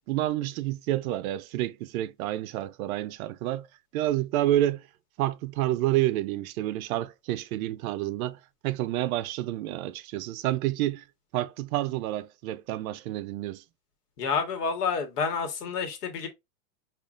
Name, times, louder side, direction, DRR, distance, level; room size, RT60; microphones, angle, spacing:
voice 1, 0.1-3.7 3.9-4.9 5.2-11.0 11.3-13.6, right 14 dB, 65° right, 0.5 m, -29 dB
voice 2, 14.2-16.3, left 5 dB, 85° left, 1.2 m, -29 dB
5.1 x 2.4 x 2.4 m
supercardioid pair, 150°, 46 cm